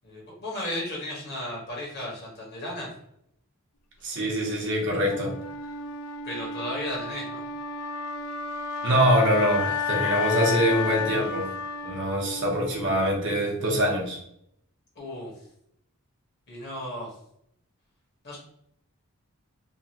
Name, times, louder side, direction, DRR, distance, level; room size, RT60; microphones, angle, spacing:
voice 1, 0.0-2.9 6.2-7.4 14.9-15.3 16.5-17.1 18.2-18.4, left 1 dB, 50° left, -3 dB, 1.1 m, -34 dB
voice 2, 4.0-5.3 8.8-11.5 11.8-14.2, equal, 60° right, -1 dB, 0.8 m, -24 dB
Wind instrument woodwind instrument, 5.1-13.1, left 5 dB, 75° left, 0.3 m, -32 dB
2.8 x 2.4 x 2.8 m, 0.71 s
head